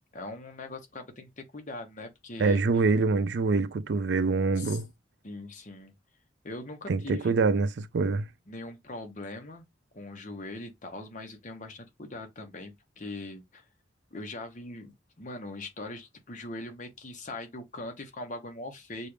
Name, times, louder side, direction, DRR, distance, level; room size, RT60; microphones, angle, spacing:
voice 1, 0.0-2.6 4.6-4.8 5.2-5.9 6.4-7.4 8.5-9.7 9.9-13.7 14.1-19.1, left 2 dB, 40° left, 1.0 m, -41 dB
voice 2, 2.4-4.9 6.9-8.3, right 4 dB, 65° right, 0.4 m, -25 dB
6.6 x 2.4 x 3.2 m
head